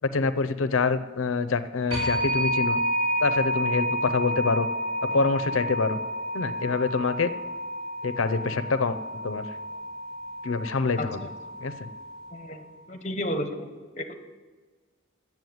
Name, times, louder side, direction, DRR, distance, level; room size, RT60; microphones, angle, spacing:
voice 1, 0.1-2.8 3.2-4.7 5.1-6.0 6.3-7.3 8.0-8.9 9.2-9.4 10.4-11.2 11.6-11.9, left 4 dB, 90° left, 12 dB, 0.6 m, -26 dB
sound 1, 1.9-12.5, equal, 30° right, 2.6 m, -30 dB
voice 2, 11.0-11.3 12.3-13.7 14.0-14.1, left 1 dB, 35° left, 6 dB, 0.9 m, -33 dB
9.3 x 7.5 x 7.8 m, 1.4 s
head